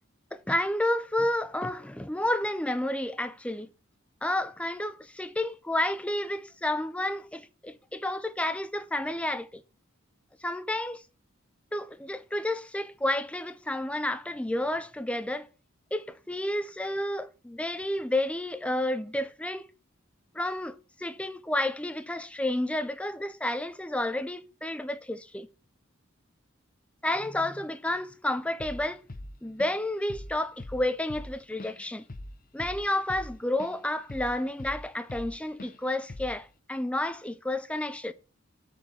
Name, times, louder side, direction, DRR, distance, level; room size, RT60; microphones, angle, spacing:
voice 1, 0.3-3.7 4.2-9.6 10.4-11.0 11.7-15.5 15.9-19.7 20.3-25.5 27.0-29.0 29.4-32.0 32.5-38.1, left 1 dB, 5° left, 0.5 m, -31 dB
Drum kit / Drum, 28.6-28.8 29.1-29.8 30.1-30.3 30.6-33.8 34.1-35.3 35.6-35.8 36.1-36.4, left 1 dB, 45° left, 0.9 m, -41 dB
8.5 x 4.3 x 7.3 m
head